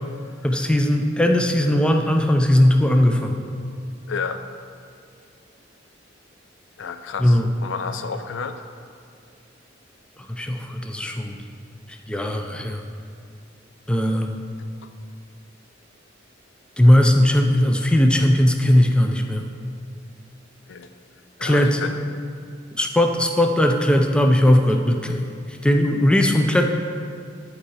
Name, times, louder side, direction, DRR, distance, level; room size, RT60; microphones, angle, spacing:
voice 1, 0.4-3.4 7.2-7.5 10.2-11.4 12.1-12.8 13.9-14.4 16.8-19.4 21.4-21.8 22.7-26.7, left 1 dB, 5° left, 4 dB, 0.4 m, -18 dB
voice 2, 4.1-4.4 6.8-8.7 20.7-20.9 21.4-22.0, left 5 dB, 80° left, 9 dB, 0.5 m, -31 dB
10.5 x 4.7 x 4.2 m, 2.2 s
head